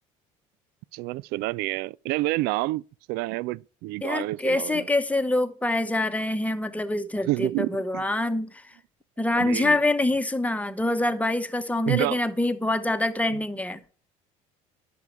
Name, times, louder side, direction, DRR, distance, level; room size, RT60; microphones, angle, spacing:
voice 1, 0.9-2.8 3.1-4.9 7.3-8.0 9.4-9.8 11.9-12.2, right 19 dB, 65° right, 0.4 m, -28 dB
voice 2, 4.0-8.7 9.2-13.8, left 2 dB, 10° left, 1.2 m, -25 dB
10.5 x 7.0 x 4.5 m
hypercardioid pair, 70°, 18 cm